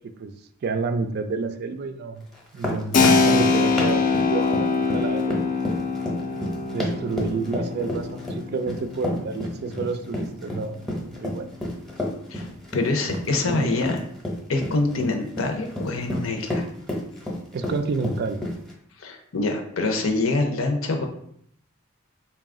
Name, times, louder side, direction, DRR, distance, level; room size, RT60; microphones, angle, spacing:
voice 1, 0.6-2.3 2.5-5.4 6.7-11.5 13.4-13.8 17.5-18.4, right 4 dB, 50° right, 9 dB, 0.3 m, -29 dB
sound 1, 2.3-18.7, left 1 dB, ahead, 0.7 m, -31 dB
Keyboard (musical), 2.9-11.3, left 4 dB, 40° left, 0.3 m, -24 dB
voice 2, 12.3-14.0 14.5-16.6 19.0-21.1, left 3 dB, 85° left, 4 dB, 0.6 m, -25 dB
4.0 x 2.3 x 3.6 m, 0.69 s
head